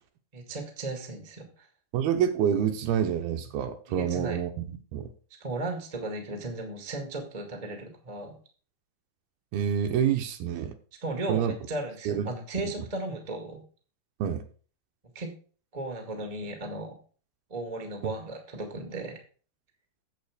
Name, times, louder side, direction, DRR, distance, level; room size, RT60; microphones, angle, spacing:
voice 1, 0.3-1.7 3.9-4.4 5.4-8.4 11.0-13.6 15.1-15.3 15.7-16.9 17.5-19.2, right 2 dB, 50° right, 4 dB, 0.4 m, -35 dB
voice 2, 1.9-4.5 4.9-5.1 9.5-10.7 11.3-11.6 12.1-12.3 14.2-14.4 18.0-18.1, right 9 dB, 75° right, 7 dB, 2.6 m, -27 dB
8.3 x 7.4 x 4.9 m, 0.40 s
omnidirectional pair, 4.6 m